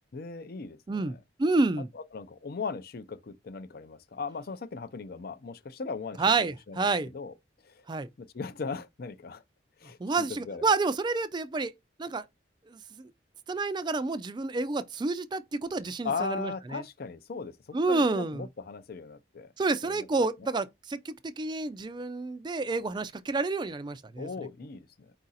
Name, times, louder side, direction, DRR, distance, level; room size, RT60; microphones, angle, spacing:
voice 1, 0.1-1.2 1.9-6.2 6.7-7.3 7.6-7.8 8.2-9.4 9.8-10.6 16.0-19.5 19.8-20.1 24.2-25.1, left 4 dB, 55° left, 0.5 m, -38 dB
voice 2, 0.9-1.9 6.2-7.1 7.9-8.1 10.0-11.7 12.0-12.2 12.7-13.1 13.5-16.8 17.7-18.5 19.6-24.3, right 3 dB, 25° right, 0.3 m, -29 dB
4.7 x 2.5 x 4.0 m
head